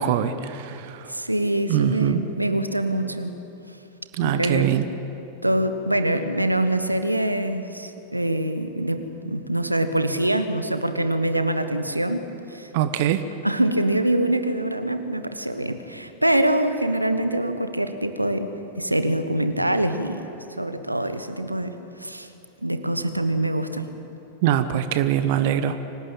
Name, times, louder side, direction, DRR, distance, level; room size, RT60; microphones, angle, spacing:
voice 1, 0.0-1.1 1.7-2.2 4.1-4.9 12.7-13.2 24.4-25.8, right 10 dB, 50° right, 11 dB, 1.1 m, -23 dB
voice 2, 1.1-3.3 4.2-4.8 5.4-12.2 12.5-12.7 13.4-20.2 20.5-22.3 22.6-23.9, right 1 dB, 85° right, 10 dB, 1.3 m, -24 dB
25.5 x 18.0 x 8.9 m, 2.9 s
figure-of-eight pair, 90°, 0 cm